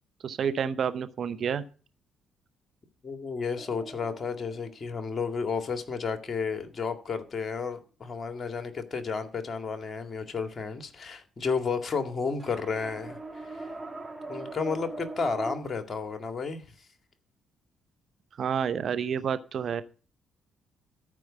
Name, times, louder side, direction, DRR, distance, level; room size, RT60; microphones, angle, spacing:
voice 1, 0.2-1.6 18.4-19.8, right 7 dB, 55° right, 1.0 m, -29 dB
voice 2, 3.0-13.8 14.3-16.6, left 5 dB, 40° left, 2.1 m, -32 dB
sound 1, 3.5-5.9 12.4-15.6, right 3 dB, 25° right, 2.8 m, -42 dB
13.5 x 5.0 x 7.5 m
hypercardioid pair, 50°, 0 cm